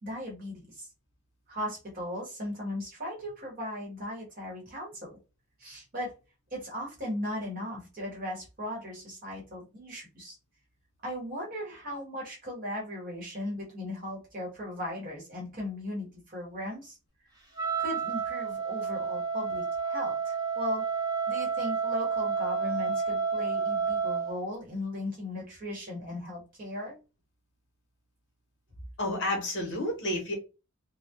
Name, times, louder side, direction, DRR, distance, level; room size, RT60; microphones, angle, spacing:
voice 1, 0.0-0.9 1.5-5.2 5.6-6.1 6.5-10.4 11.0-17.0 17.8-20.9 21.3-27.0, left 1 dB, 40° right, -3 dB, 1.0 m, -37 dB
Wind instrument woodwind instrument, 17.6-24.4, right 6 dB, 20° right, 0.5 m, -30 dB
voice 2, 29.0-30.4, left 1 dB, 55° left, 2 dB, 0.8 m, -30 dB
2.2 x 2.1 x 2.7 m, 0.30 s
head